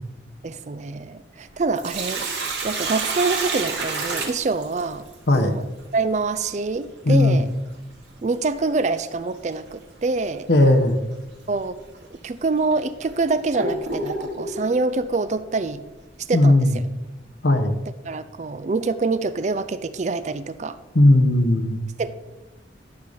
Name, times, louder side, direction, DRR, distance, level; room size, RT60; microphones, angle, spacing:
voice 1, 0.4-5.1 5.3-5.7 5.9-7.5 8.2-10.5 11.5-11.8 12.2-15.8 16.3-16.9 18.0-20.8 22.0-22.1, right 3 dB, 40° right, 12 dB, 0.4 m, -25 dB
Sink (filling or washing), 1.5-5.1 7.5-7.6 9.5-9.7 10.2-10.3 11.1-11.3 11.9-12.0 12.7-14.6, right 3 dB, 75° right, 2.6 m, -28 dB
voice 2, 7.1-7.4 10.5-11.0 16.3-16.8 17.4-17.8 20.9-21.8, left 1 dB, 65° left, 6 dB, 1.0 m, -17 dB
12.0 x 4.0 x 6.6 m, 1.1 s
head